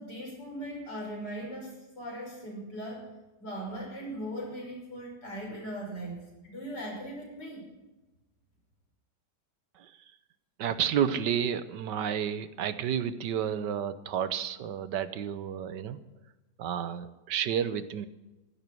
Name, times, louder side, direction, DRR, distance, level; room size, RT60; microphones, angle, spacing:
voice 1, 0.0-3.0 3.4-6.2 6.4-7.7, equal, 80° left, -1 dB, 6.5 m, -39 dB
voice 2, 10.6-16.0 16.6-18.1, right 8 dB, 80° right, 13 dB, 1.5 m, -31 dB
15.0 x 12.5 x 6.2 m, 1.1 s
omnidirectional pair, 1.8 m